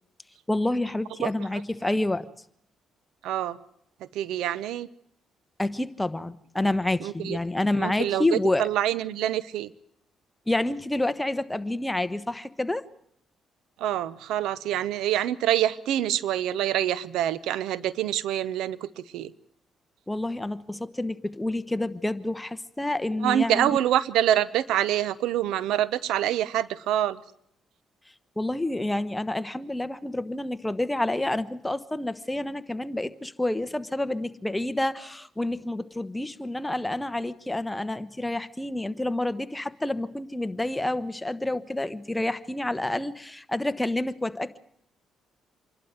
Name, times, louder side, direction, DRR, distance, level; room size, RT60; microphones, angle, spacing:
voice 1, 0.5-2.3 5.6-8.7 10.5-12.8 20.1-23.7 28.4-44.6, left 1 dB, 10° left, 13 dB, 1.1 m, -28 dB
voice 2, 3.2-3.6 4.1-4.9 7.0-7.4 7.8-9.7 13.8-19.3 23.2-27.2, right 11 dB, 90° right, 18 dB, 0.8 m, -26 dB
26.5 x 12.0 x 9.3 m, 0.70 s
cardioid pair, 90°, 0 cm